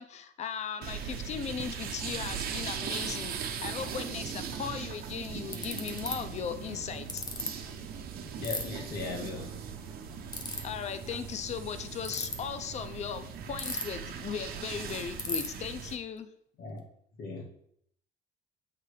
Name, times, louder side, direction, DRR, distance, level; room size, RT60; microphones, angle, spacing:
voice 1, 0.0-7.3 10.6-16.3, left 7 dB, 40° left, 11 dB, 0.6 m, -37 dB
sound 1, 0.8-16.0, right 7 dB, 60° right, 1.0 m, -39 dB
Ratchet pawl, 5.5-6.1 7.1-7.5 8.4-8.6 10.3-10.6 11.9-12.3 13.6-14.1 14.4-14.5 14.7-14.8 15.2-15.5, left 3 dB, 25° left, 0.9 m, -34 dB
voice 2, 8.4-9.6 16.6-16.8 17.2-17.4, left 3 dB, 65° left, -1 dB, 1.9 m, -38 dB
7.6 x 3.3 x 4.8 m, 0.70 s
cardioid pair, 110°, 17 cm